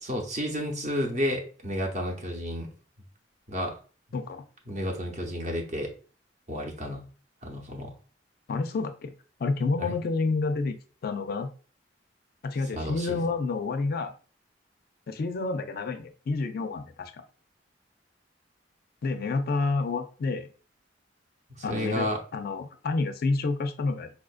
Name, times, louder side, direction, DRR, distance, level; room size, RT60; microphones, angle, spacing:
voice 1, 0.0-2.7 3.5-3.8 4.7-5.9 6.5-7.1 7.4-7.9 9.8-10.0 12.7-13.3 21.5-22.2, equal, 40° right, 1 dB, 0.8 m, -31 dB
voice 2, 4.1-4.4 8.5-9.1 9.4-11.5 12.4-14.1 15.1-17.2 19.0-20.5 21.6-24.1, left 3 dB, 50° left, 9 dB, 0.4 m, -29 dB
4.4 x 2.4 x 2.4 m, 0.37 s
head